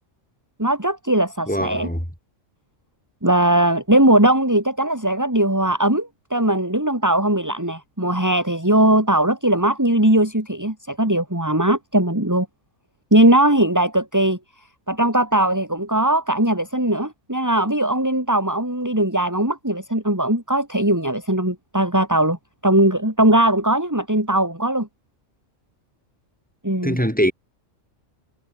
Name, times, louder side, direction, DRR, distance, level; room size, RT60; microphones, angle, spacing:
voice 1, 0.6-1.9 3.2-12.5 13.1-14.4 14.9-22.4 22.6-24.9 26.6-27.0, right 1 dB, 15° right, 4.1 m, -19 dB
voice 2, 1.5-2.0 26.8-27.3, equal, 5° left, 7.0 m, -22 dB
omnidirectional pair, 1.3 m